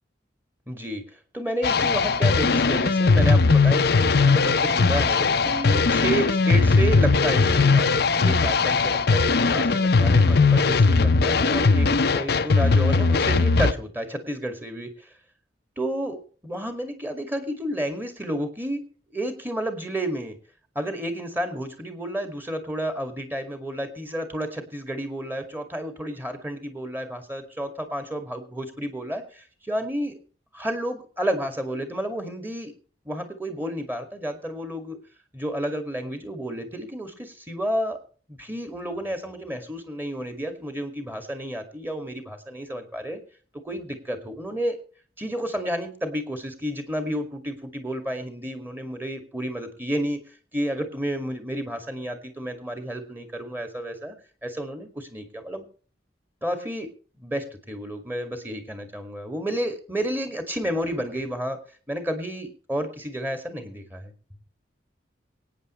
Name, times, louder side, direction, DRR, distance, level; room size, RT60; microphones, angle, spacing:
voice 1, 0.7-15.1 15.8-20.4 20.8-30.2 30.5-32.7 33.0-35.0 35.3-38.0 38.3-43.2 43.5-44.8 45.2-50.2 50.5-54.1 54.4-55.6 56.4-61.6 61.9-64.1, right 1 dB, 10° right, 6 dB, 2.2 m, -31 dB
sound 1, 1.6-13.7, left 4 dB, 60° left, 0.7 m, -19 dB
24.0 x 9.4 x 3.2 m, 0.41 s
head